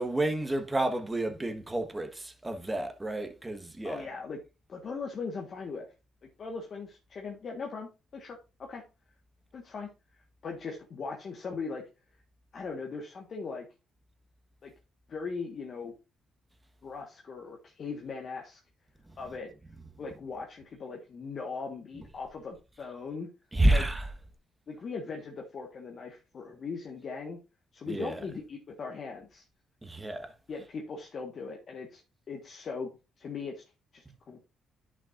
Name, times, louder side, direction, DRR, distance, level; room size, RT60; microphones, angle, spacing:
voice 1, 0.0-4.1 23.5-24.1 27.9-28.2 29.8-30.3, right 1 dB, 15° right, 1.3 m, -29 dB
voice 2, 3.8-4.4 4.7-5.9 6.2-8.8 9.5-9.9 10.4-11.8 12.5-13.7 14.6-14.7 15.1-15.9 16.8-18.6 19.2-19.5 20.0-23.3 23.7-23.9 24.7-27.4 27.7-29.4 30.5-32.0 32.3-32.9 33.2-33.6 33.9-34.4, left 4 dB, 50° left, 1.4 m, -39 dB
10.5 x 6.2 x 2.5 m
cardioid pair, 90°, 0 cm